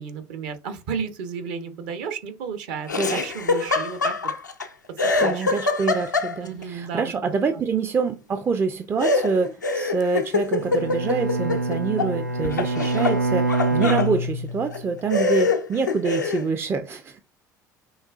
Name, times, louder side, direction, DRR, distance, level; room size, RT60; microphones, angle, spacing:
voice 1, 0.0-4.1 5.0-5.4 6.4-7.1 7.5-7.7, right 6 dB, 55° right, 0.8 m, -33 dB
Laughter, 2.9-4.7 5.0-6.6 9.0-12.1 12.4-14.1 14.7-14.8 15.1-16.5, left 3 dB, 85° left, 0.4 m, -24 dB
voice 2, 5.2-17.2, right 5 dB, 25° right, 0.4 m, -26 dB
Bowed string instrument, 10.5-14.9, right 2 dB, 85° right, 0.4 m, -25 dB
6.3 x 2.3 x 2.4 m
figure-of-eight pair, 65°, 10 cm